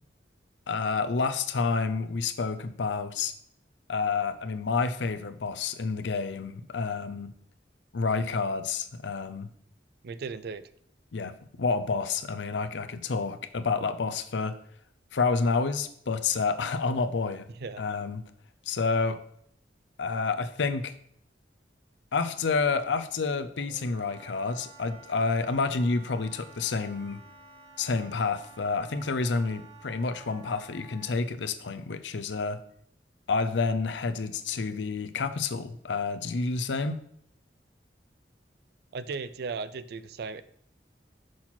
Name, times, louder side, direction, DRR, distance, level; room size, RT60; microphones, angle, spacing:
voice 1, 0.7-3.3 3.9-7.3 7.9-9.5 11.1-14.6 15.1-17.5 17.8-18.2 18.7-19.2 20.0-20.9 22.1-27.2 27.8-32.6 33.3-37.0, left 4 dB, 90° left, 10 dB, 0.6 m, -29 dB
voice 2, 10.0-10.7 17.6-17.8 38.9-40.4, right 4 dB, 60° right, 14 dB, 0.4 m, -36 dB
Wind instrument woodwind instrument, 23.5-31.1, right 4 dB, 90° right, 3.4 m, -52 dB
6.2 x 5.9 x 4.3 m, 0.66 s
head